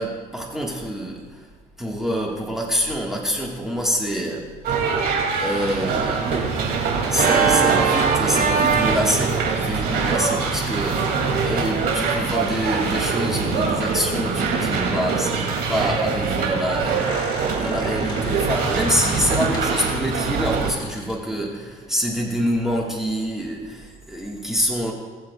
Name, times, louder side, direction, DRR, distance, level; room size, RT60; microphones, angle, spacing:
voice 1, 0.0-1.5 1.8-4.6 5.4-24.9, equal, ahead, -2 dB, 1.7 m, -26 dB
sound 1, 4.6-20.7, right 5 dB, 70° right, 2.7 m, -24 dB
Organ, 7.1-12.0, right 6 dB, 55° right, 1.4 m, -24 dB
Squeak, 15.7-20.1 20.7-21.2, equal, 25° left, 2.7 m, -36 dB
20.0 x 7.4 x 2.4 m, 1.5 s
cardioid pair, 110°, 17 cm